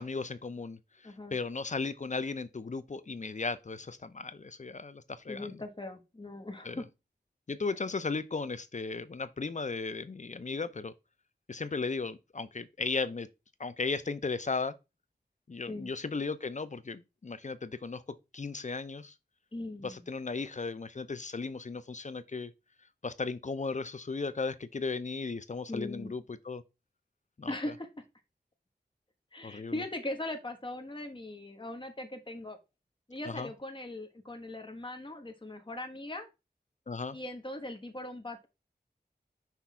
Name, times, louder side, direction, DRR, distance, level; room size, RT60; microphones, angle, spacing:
voice 1, 0.0-5.6 6.6-6.8 7.5-10.9 11.5-13.3 13.6-14.7 15.5-18.0 18.3-19.1 19.8-22.5 23.0-26.6 27.4-27.5 29.4-29.8 33.3-33.5 36.9-37.2, left 4 dB, 45° left, 0.6 m, -36 dB
voice 2, 1.0-1.3 5.3-6.9 15.7-15.9 19.5-20.0 25.7-26.1 27.5-27.9 29.3-32.6 33.1-36.3 37.1-38.5, left 1 dB, 30° left, 1.2 m, -40 dB
5.9 x 3.5 x 4.6 m
wide cardioid pair, 55°, 18 cm